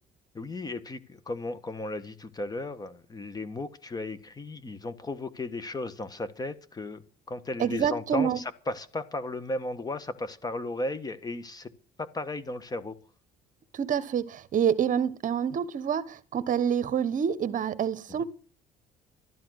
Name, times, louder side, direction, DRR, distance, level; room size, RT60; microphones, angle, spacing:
voice 1, 0.3-11.7 12.0-13.0 18.1-18.2, left 2 dB, 25° left, 1.4 m, -35 dB
voice 2, 7.6-8.4 13.7-18.2, right 8 dB, 50° right, 1.2 m, -27 dB
12.5 x 12.0 x 6.4 m
cardioid pair, 110°, 17 cm